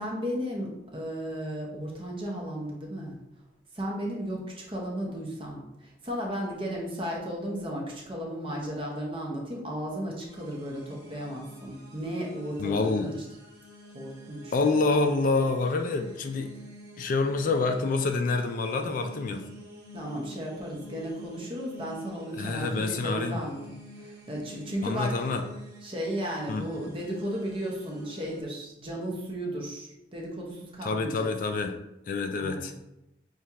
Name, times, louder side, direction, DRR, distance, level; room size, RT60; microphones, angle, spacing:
voice 1, 0.0-3.2 3.7-13.2 13.9-14.5 19.9-25.3 25.8-31.3 32.4-32.7, equal, 30° right, -2 dB, 0.9 m, -35 dB
sound 1, 10.3-28.4, left 1 dB, 60° right, 1.1 m, -48 dB
voice 2, 12.6-13.1 14.5-16.6 17.0-19.5 22.3-23.4 24.8-25.4 26.5-26.7 30.8-31.8 32.1-32.7, left 3 dB, 45° left, 6 dB, 0.3 m, -27 dB
6.2 x 2.4 x 2.8 m, 0.91 s
head